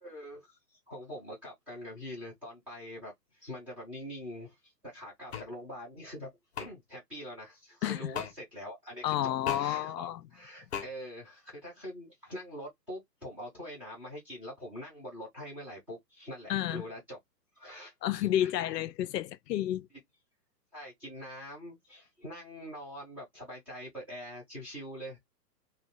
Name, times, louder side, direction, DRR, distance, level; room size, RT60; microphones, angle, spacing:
voice 1, 0.0-6.3 6.6-17.2 17.6-18.5 20.7-25.2, equal, 5° right, 0.6 m, -44 dB
sound 1, 5.3-5.5 6.5-6.7 8.1-8.3 9.4-9.7 10.7-10.9, left 8 dB, 40° left, 0.7 m, -35 dB
voice 2, 9.0-10.2 16.5-16.8 18.0-19.9, left 12 dB, 75° left, 0.5 m, -30 dB
2.5 x 2.3 x 3.6 m
hypercardioid pair, 160°, 49 cm